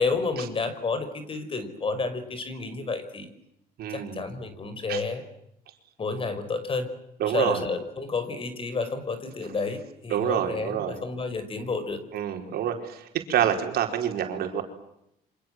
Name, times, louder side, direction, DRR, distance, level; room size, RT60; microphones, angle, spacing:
voice 1, 0.0-3.3 3.9-5.2 6.0-6.9 7.3-12.0 13.4-13.5, left 4 dB, 30° left, 11 dB, 4.9 m, -30 dB
voice 2, 3.8-4.2 4.9-5.0 7.2-7.6 10.1-11.0 12.1-13.0 13.3-14.6, right 10 dB, 65° right, 4 dB, 4.7 m, -27 dB
28.5 x 25.5 x 7.7 m, 0.80 s
cardioid pair, 110°, 17 cm